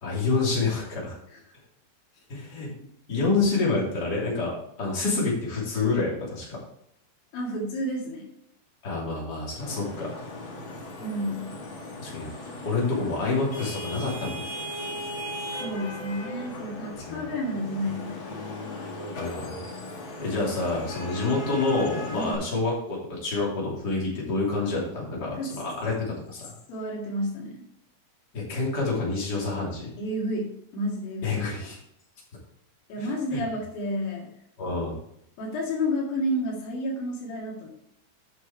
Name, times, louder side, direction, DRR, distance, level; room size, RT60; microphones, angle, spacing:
voice 1, 0.0-1.1 2.3-2.7 3.1-4.5 4.8-6.5 8.8-10.1 12.0-12.3 12.6-14.4 17.0-17.2 19.2-19.6 20.2-25.9 26.3-26.5 28.3-29.9 31.2-31.8 33.0-33.4 34.6-35.0, left 3 dB, 30° left, -4 dB, 3.1 m, -27 dB
voice 2, 7.3-8.3 11.0-11.5 15.6-18.5 22.1-22.4 25.3-25.6 26.7-27.6 30.0-31.4 32.9-34.3 35.4-37.7, equal, 85° left, -1 dB, 3.8 m, -31 dB
Vehicle horn car horn honking / Traffic noise roadway noise, 9.6-22.3, left 1 dB, 45° left, 1.9 m, -37 dB
9.1 x 6.0 x 4.5 m, 0.73 s
omnidirectional pair, 4.0 m